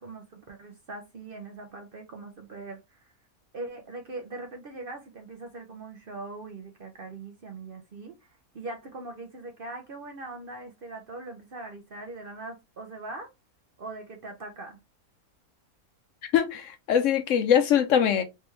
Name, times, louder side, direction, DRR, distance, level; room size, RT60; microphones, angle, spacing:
voice 1, 0.0-3.1 3.5-13.3 13.8-14.8, right 2 dB, 50° right, 0.7 m, -41 dB
voice 2, 16.3-18.2, left 8 dB, 70° left, 0.8 m, -22 dB
3.3 x 3.2 x 3.2 m
omnidirectional pair, 1.5 m